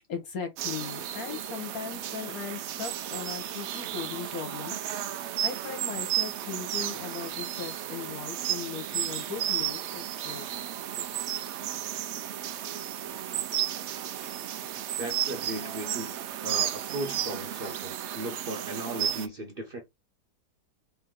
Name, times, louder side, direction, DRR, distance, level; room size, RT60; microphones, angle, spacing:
voice 1, 0.1-4.8 5.4-10.5, left 7 dB, 60° left, 1.6 m, -38 dB
sound 1, 0.6-19.3, right 11 dB, 90° right, 0.6 m, -33 dB
voice 2, 15.0-16.2 16.4-19.8, right 1 dB, 45° right, 0.9 m, -36 dB
4.2 x 2.7 x 3.6 m
omnidirectional pair, 1.7 m